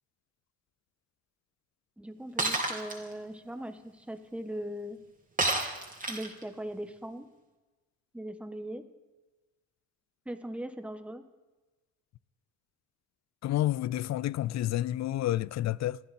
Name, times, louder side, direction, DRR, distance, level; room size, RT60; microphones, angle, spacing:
voice 1, 2.0-5.0 6.1-7.3 8.1-8.8 10.2-11.2, right 1 dB, 5° right, 1.3 m, -39 dB
Shatter, 2.4-3.0 5.4-6.4, right 2 dB, 25° right, 3.1 m, -29 dB
voice 2, 13.4-16.0, left 13 dB, 60° left, 0.5 m, -29 dB
27.5 x 10.5 x 4.3 m
cardioid pair, 90°, 30 cm